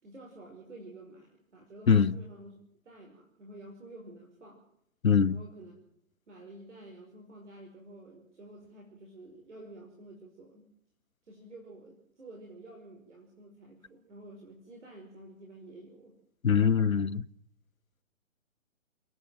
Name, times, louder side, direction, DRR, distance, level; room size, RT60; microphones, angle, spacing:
voice 1, 0.0-2.6 2.8-4.6 5.3-5.7 6.3-10.7 11.2-16.1, right 1 dB, 60° right, 5.4 m, -50 dB
voice 2, 5.0-5.4 16.4-17.2, left 7 dB, 85° left, 0.8 m, -23 dB
29.0 x 11.0 x 9.2 m
figure-of-eight pair, 135°, 40 cm